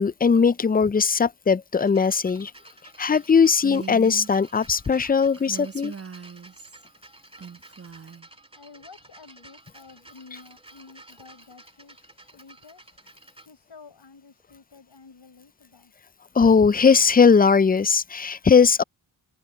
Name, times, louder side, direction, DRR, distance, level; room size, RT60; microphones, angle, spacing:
voice 1, 0.0-2.5 3.0-5.9 16.4-18.8, left 5 dB, 20° left, 0.4 m, -19 dB
sound 1, 1.8-13.5 14.4-14.5, right 2 dB, 10° right, 2.4 m, -51 dB
Female speech woman speaking, 3.6-4.3 5.4-6.8 7.4-8.3, right 6 dB, 30° right, 1.1 m, -39 dB
voice 2, 8.5-13.0 13.4-15.9, left 4 dB, 65° left, 6.2 m, -50 dB
cardioid pair, 50°, 45 cm